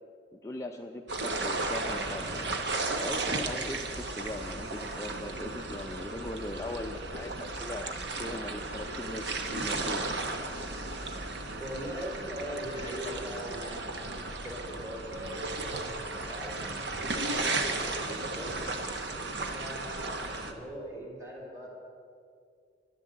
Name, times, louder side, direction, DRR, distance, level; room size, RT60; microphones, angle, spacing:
voice 1, 0.3-2.6 3.0-10.0, left 1 dB, 15° left, 2 dB, 0.5 m, -40 dB
sound 1, 1.1-20.5, right 2 dB, 65° right, 1.2 m, -34 dB
voice 2, 11.6-18.6 19.4-21.7, equal, 15° right, -2 dB, 3.6 m, -41 dB
12.0 x 12.0 x 7.7 m, 2.3 s
head